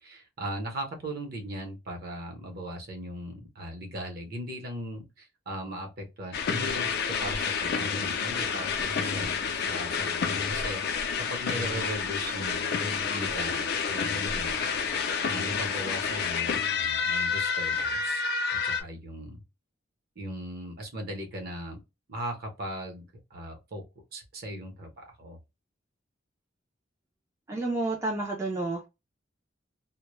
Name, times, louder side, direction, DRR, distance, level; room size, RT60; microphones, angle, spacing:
voice 1, 0.0-6.9 7.2-18.2 18.5-19.4 20.2-21.8 22.1-23.8 24.1-25.4, right 1 dB, 55° right, 0.8 m, -38 dB
sound 1, 6.3-18.8, left 5 dB, 55° left, 0.4 m, -29 dB
voice 2, 27.5-28.9, right 2 dB, 15° right, 0.4 m, -30 dB
2.1 x 2.0 x 3.0 m
head